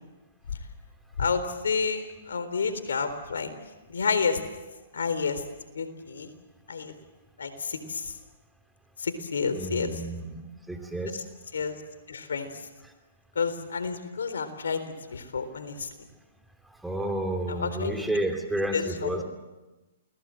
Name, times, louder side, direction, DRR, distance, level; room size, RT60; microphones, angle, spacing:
voice 1, 1.2-3.5 3.9-4.4 4.9-5.4 5.8-6.3 6.7-6.9 7.4-8.1 9.0-10.0 11.1-11.2 11.5-11.8 12.1-12.5 13.4-14.8 15.1-15.9 17.5-18.0 18.7-19.2, left 5 dB, 80° left, 10 dB, 3.8 m, -30 dB
voice 2, 9.5-10.4 10.7-11.2 16.8-19.2, right 1 dB, 5° right, 4 dB, 3.0 m, -30 dB
29.0 x 19.0 x 7.7 m, 1.1 s
hypercardioid pair, 130°, 0 cm